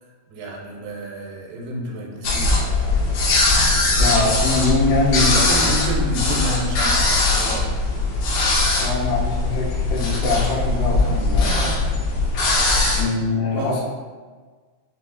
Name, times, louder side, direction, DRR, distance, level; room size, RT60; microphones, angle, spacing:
voice 1, 0.0-2.6 5.1-7.7 13.5-13.7, right 1 dB, 90° right, -2 dB, 2.6 m, -30 dB
sound 1, 2.2-13.0, left 2 dB, 75° left, 1.9 m, -20 dB
voice 2, 4.0-5.7 8.8-11.8 13.0-13.8, left 2 dB, 90° left, -4 dB, 1.6 m, -23 dB
6.0 x 2.6 x 2.4 m, 1.4 s
omnidirectional pair, 4.4 m